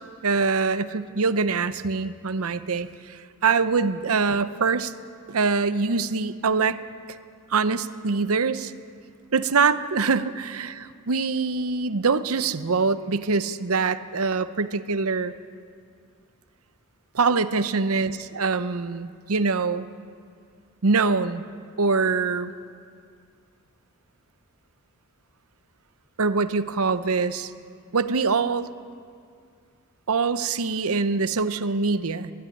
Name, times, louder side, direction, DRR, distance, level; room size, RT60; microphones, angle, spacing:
voice 1, 0.2-4.9 5.3-6.8 7.5-8.7 9.3-15.3 17.1-19.9 20.8-21.4 21.8-22.5 26.2-27.5 27.9-28.7 30.1-32.3, right 4 dB, 75° right, 12 dB, 0.8 m, -24 dB
21.5 x 13.0 x 9.8 m, 2.2 s
head